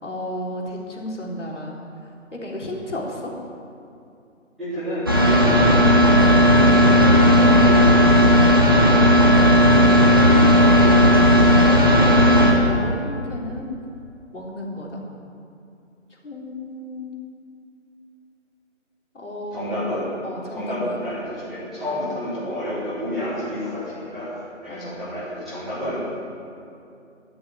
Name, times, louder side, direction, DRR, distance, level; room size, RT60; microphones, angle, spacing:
voice 1, 0.0-1.7 2.3-3.3 6.8-7.9 10.1-13.7 14.3-15.0 16.2-17.1 19.1-19.9 20.2-21.0 21.9-22.1 24.7-25.0, left 1 dB, 65° left, -2 dB, 3.8 m, -32 dB
voice 2, 4.6-5.7 19.5-20.1 20.5-24.3 24.6-26.0, equal, ahead, -23 dB, 1.3 m, -29 dB
sound 1, 5.1-12.5, equal, 20° right, 0.9 m, -14 dB
13.0 x 7.8 x 9.3 m, 2.6 s
figure-of-eight pair, 170°, 38 cm